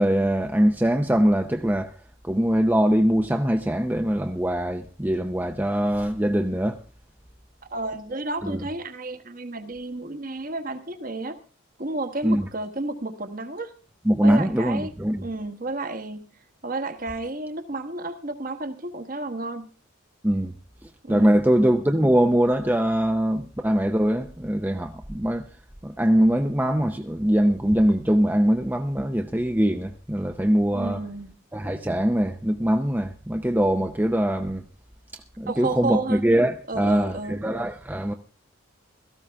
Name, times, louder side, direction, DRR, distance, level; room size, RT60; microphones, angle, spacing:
voice 1, 0.0-1.9 2.2-6.8 8.4-8.6 12.2-12.5 14.1-15.2 20.2-20.5 21.1-25.4 25.8-31.0 31.5-34.6 35.4-38.1, equal, 10° right, 0.6 m, -22 dB
voice 2, 7.7-11.4 11.8-13.7 14.2-14.9 15.2-16.3 16.6-19.7 21.0-21.4 30.7-31.4 35.5-36.2 36.7-37.4, right 2 dB, 40° right, 1.2 m, -31 dB
17.0 x 14.0 x 3.4 m
head